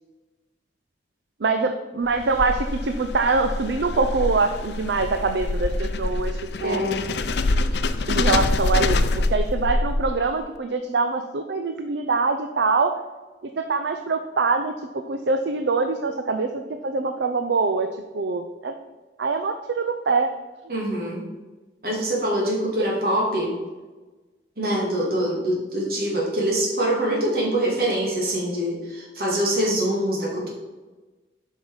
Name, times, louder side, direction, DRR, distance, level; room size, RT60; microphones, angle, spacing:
voice 1, 1.4-6.8 8.1-12.9 13.6-17.9 18.1-18.7 19.2-20.3 22.8-22.9, right 4 dB, 75° right, 7 dB, 0.5 m, -24 dB
sound 1, 2.1-10.4, left 2 dB, 65° left, 0.5 m, -25 dB
voice 2, 6.6-7.0 20.7-21.2 21.8-23.5 24.6-30.5, right 1 dB, 55° right, -3 dB, 2.6 m, -24 dB
8.0 x 5.7 x 4.8 m, 1.2 s
head